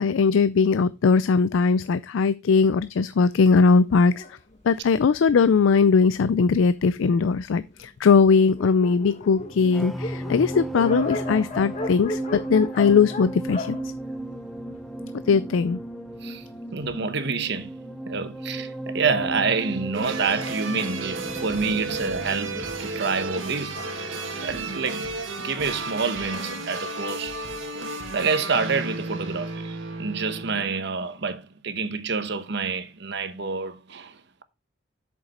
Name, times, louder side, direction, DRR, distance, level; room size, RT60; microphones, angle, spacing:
voice 1, 0.0-4.2 4.7-13.8 15.3-15.8, left 5 dB, 85° left, 0.4 m, -20 dB
Dog, 4.1-7.1 7.8-7.9 8.2-8.3 8.5-14.9, left 2 dB, 35° left, 1.2 m, -36 dB
sound 1, 9.4-26.0 26.3-26.6, right 1 dB, ahead, 0.9 m, -36 dB
voice 2, 16.7-17.7 18.1-23.8 24.4-27.4 28.1-34.4, right 5 dB, 60° right, 1.0 m, -28 dB
sound 2, 19.9-30.6, right 2 dB, 85° right, 1.8 m, -33 dB
8.0 x 6.8 x 4.1 m
head